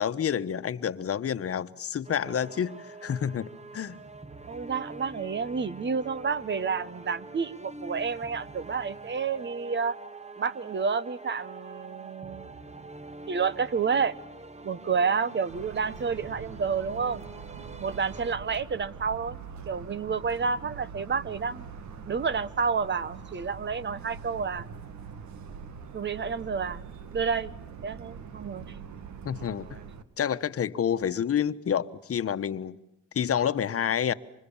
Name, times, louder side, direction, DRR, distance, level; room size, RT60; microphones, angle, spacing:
voice 1, 0.0-4.0 29.2-29.7 30.2-32.8 33.1-34.1, left 8 dB, 50° left, 1.3 m, -28 dB
sound 1, 2.0-18.4, right 2 dB, 20° right, 1.6 m, -45 dB
voice 2, 4.5-10.0 10.4-12.5 13.3-14.1 14.6-17.2 17.8-19.4 19.7-21.7 22.1-24.7 25.9-26.8 27.1-27.5 27.8-28.7, right 5 dB, 35° right, 1.1 m, -29 dB
Motor vehicle (road) / Siren, 15.5-30.0, right 6 dB, 70° right, 2.0 m, -43 dB
28.5 x 26.0 x 7.3 m
cardioid pair, 90°, 30 cm